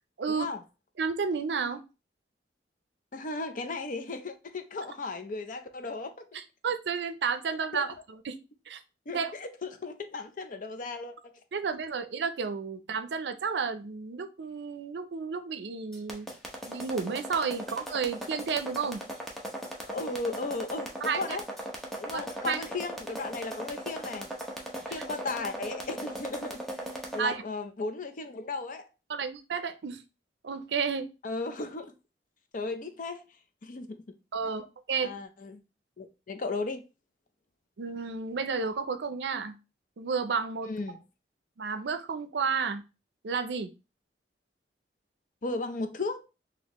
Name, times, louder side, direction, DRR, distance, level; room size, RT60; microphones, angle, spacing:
voice 1, 0.3-0.6 3.1-6.4 7.7-7.8 9.1-11.4 19.8-21.4 22.0-24.3 24.9-26.6 27.1-28.9 31.2-31.9 32.5-33.2 33.6-34.2 35.0-35.6 36.0-36.8 40.7-41.0 45.4-46.2, left 3 dB, 50° left, 0.5 m, -35 dB
voice 2, 1.0-1.8 6.3-8.3 8.7-8.8 9.1-9.3 11.5-16.3 16.7-19.0 21.0-21.4 22.1-22.6 24.9-25.0 27.2-27.4 29.1-30.0 30.4-31.1 34.3-35.1 37.8-39.5 40.0-40.7 41.6-42.8 43.2-43.7, right 5 dB, 75° right, 0.5 m, -32 dB
sound 1, 15.9-27.2, equal, ahead, 0.8 m, -38 dB
4.1 x 2.9 x 2.9 m
head